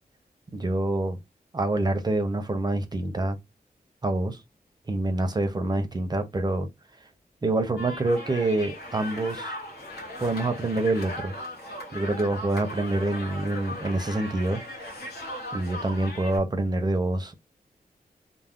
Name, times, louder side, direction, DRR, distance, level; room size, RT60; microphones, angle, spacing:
voice 1, 0.5-1.2 1.5-3.4 4.0-4.4 4.9-6.7 7.4-9.5 10.2-11.4 11.9-14.6 15.5-17.3, right 2 dB, 25° right, 0.5 m, -26 dB
sound 1, 7.8-16.4, left 1 dB, 80° left, 0.9 m, -38 dB
2.3 x 2.0 x 3.5 m
wide cardioid pair, 130°, 16 cm